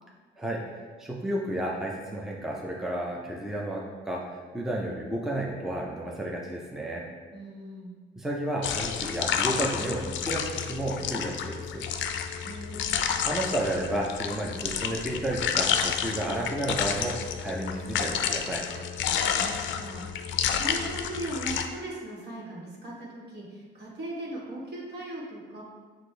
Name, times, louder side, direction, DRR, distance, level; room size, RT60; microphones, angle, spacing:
voice 1, 1.0-7.0 8.2-11.9 13.2-18.7, right 1 dB, ahead, -2 dB, 0.6 m, -32 dB
voice 2, 7.3-8.0 12.4-13.0 19.2-20.0 20.3-25.6, right 1 dB, 55° right, -4 dB, 1.4 m, -38 dB
sound 1, 8.6-21.7, left 8 dB, 70° left, 0.4 m, -30 dB
6.1 x 2.6 x 3.3 m, 1.4 s
cardioid pair, 90°, 20 cm